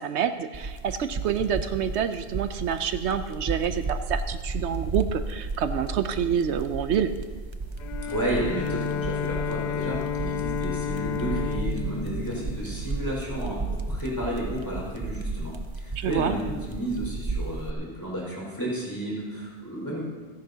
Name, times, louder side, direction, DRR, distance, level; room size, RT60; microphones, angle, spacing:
voice 1, 0.0-7.1 16.0-16.3, right 8 dB, 80° right, 10 dB, 0.9 m, -27 dB
sound 1, 0.5-17.7, right 3 dB, 30° right, 0.6 m, -33 dB
Bowed string instrument, 7.8-13.3, left 8 dB, 55° left, 0.5 m, -32 dB
voice 2, 8.0-20.0, right 1 dB, 15° left, -5 dB, 4.9 m, -32 dB
27.5 x 10.5 x 2.8 m, 1.4 s
omnidirectional pair, 1.1 m